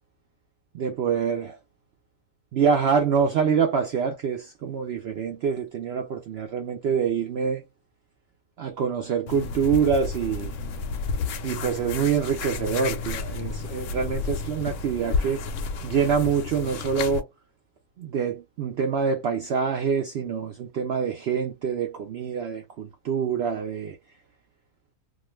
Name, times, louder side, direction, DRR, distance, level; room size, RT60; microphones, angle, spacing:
voice 1, 0.7-1.6 2.5-7.6 8.6-10.5 11.4-15.4 15.8-17.3 18.0-24.0, right 6 dB, 75° right, 0.6 m, -25 dB
sound 1, 9.3-17.2, left 4 dB, 70° left, 0.8 m, -31 dB
2.4 x 2.4 x 3.0 m
omnidirectional pair, 1.6 m